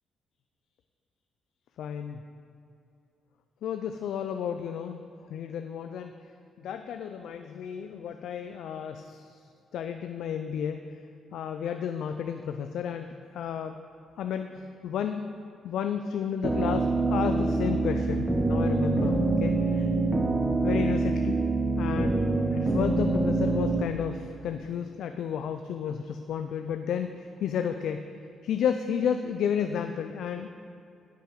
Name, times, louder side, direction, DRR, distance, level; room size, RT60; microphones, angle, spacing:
voice 1, 1.8-2.2 3.6-5.0 5.3-6.1 6.6-9.4 9.7-10.8 11.3-13.8 14.2-15.3 15.6-19.9 20.6-21.4 21.8-22.2 22.5-28.0 28.4-30.5, left 8 dB, 75° left, 7 dB, 0.4 m, -32 dB
sound 1, 16.4-23.8, right 3 dB, 15° right, 0.9 m, -25 dB
11.0 x 6.8 x 4.8 m, 2.6 s
cardioid pair, 90°, 0 cm